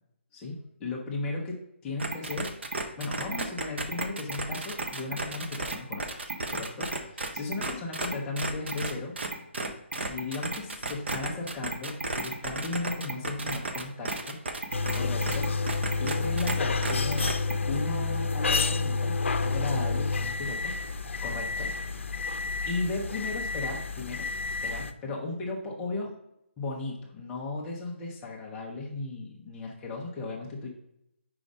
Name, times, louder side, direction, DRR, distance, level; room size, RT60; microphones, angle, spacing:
voice 1, 0.3-2.6 3.0-9.2 9.9-14.4 14.9-15.5 16.0-17.3 17.7-20.7 21.2-21.7 22.7-24.3 24.6-26.2 26.6-30.7, left 3 dB, 5° left, -3 dB, 0.5 m, -35 dB
sound 1, 2.0-16.5 16.8-17.5, right 3 dB, 60° right, 0.9 m, -33 dB
sound 2, 14.7-24.9, left 4 dB, 70° left, 0.6 m, -29 dB
5.0 x 4.8 x 5.2 m, 0.81 s
hypercardioid pair, 180°, 7 cm